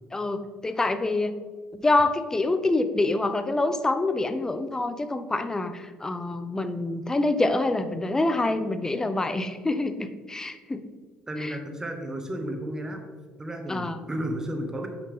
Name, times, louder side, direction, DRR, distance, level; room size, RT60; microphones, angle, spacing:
voice 1, 0.1-1.3 1.7-10.8 11.4-11.6 13.7-14.0, left 2 dB, 15° left, 10 dB, 0.7 m, -26 dB
voice 2, 11.3-13.0 13.4-14.9, right 1 dB, 15° right, 4 dB, 1.4 m, -33 dB
8.7 x 5.4 x 3.7 m, 1.5 s
supercardioid pair, 90°, 3 cm